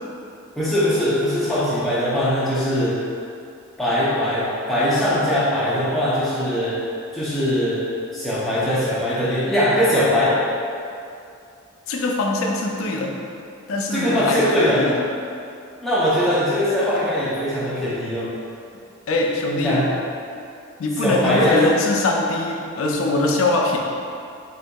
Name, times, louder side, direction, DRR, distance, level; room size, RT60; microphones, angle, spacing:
voice 1, 0.6-3.0 3.8-6.8 7.1-7.8 8.1-10.4 13.9-14.9 15.8-18.3 19.5-19.9 21.0-21.6, left 1 dB, ahead, -11 dB, 0.5 m, -21 dB
voice 2, 11.9-13.2 13.7-14.9 17.0-17.1 19.1-19.8 20.8-23.8, left 2 dB, 70° left, 0 dB, 0.4 m, -22 dB
3.7 x 2.6 x 2.2 m, 2.5 s
head